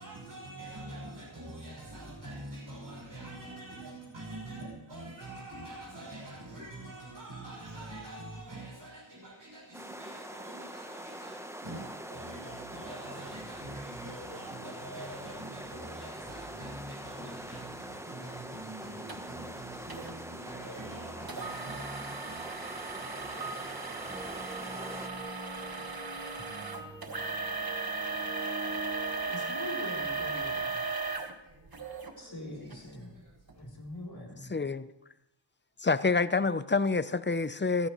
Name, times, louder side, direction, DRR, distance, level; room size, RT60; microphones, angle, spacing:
voice 1, 0.0-27.1 31.4-33.6, right 1 dB, 80° right, 6.7 m, -45 dB
sound 1, 9.7-25.1, right 1 dB, 5° right, 0.9 m, -44 dB
sound 2, 19.1-19.2 19.9-20.1 21.3-32.1 32.7-32.8 33.4-33.5, right 4 dB, 55° right, 1.4 m, -36 dB
sound 3, 24.1-29.3, right 1 dB, 25° right, 4.3 m, -45 dB
voice 2, 29.3-30.8 32.2-33.1 33.5-34.5, left 1 dB, 60° left, 3.5 m, -43 dB
voice 3, 34.5-34.9 35.8-37.9, left 4 dB, 25° left, 0.6 m, -27 dB
28.5 x 10.5 x 3.1 m
wide cardioid pair, 50°, 44 cm